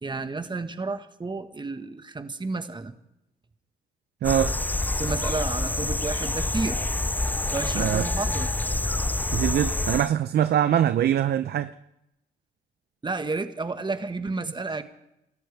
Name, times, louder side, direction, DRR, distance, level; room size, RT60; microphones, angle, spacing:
voice 1, 0.0-2.9 4.9-6.8 7.5-8.5 13.0-14.8, right 3 dB, 25° right, 1.6 m, -31 dB
sound 1, 4.2-10.1, left 2 dB, 10° left, 0.5 m, -27 dB
voice 2, 4.2-4.6 7.7-8.0 9.3-11.7, right 10 dB, 65° right, 0.7 m, -23 dB
28.5 x 14.0 x 3.5 m
supercardioid pair, 55°, 18 cm